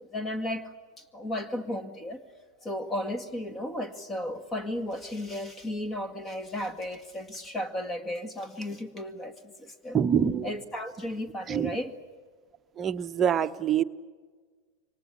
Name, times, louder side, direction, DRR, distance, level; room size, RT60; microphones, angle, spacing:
voice 1, 0.0-10.0 10.4-12.0, left 1 dB, 15° left, 13 dB, 2.0 m, -35 dB
voice 2, 9.9-10.5 11.5-11.8 12.8-13.8, right 8 dB, 25° right, 10 dB, 1.0 m, -25 dB
27.5 x 24.5 x 8.5 m, 1.5 s
figure-of-eight pair, 90°, 0 cm